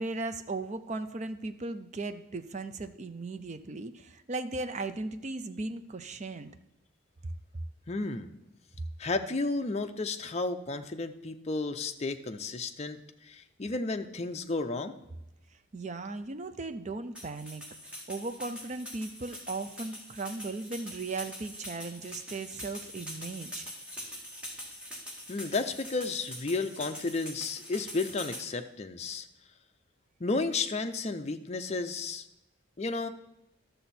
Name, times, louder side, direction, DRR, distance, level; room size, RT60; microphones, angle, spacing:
voice 1, 0.0-6.5 15.7-17.6 18.1-23.7, right 3 dB, 35° right, 10 dB, 0.5 m, -37 dB
voice 2, 7.9-8.3 9.0-14.9 25.3-29.3 30.2-32.3 32.8-33.1, left 3 dB, 35° left, 7 dB, 0.5 m, -32 dB
sound 1, 17.1-28.4, equal, 5° right, 1.7 m, -44 dB
12.0 x 6.8 x 4.3 m, 0.89 s
head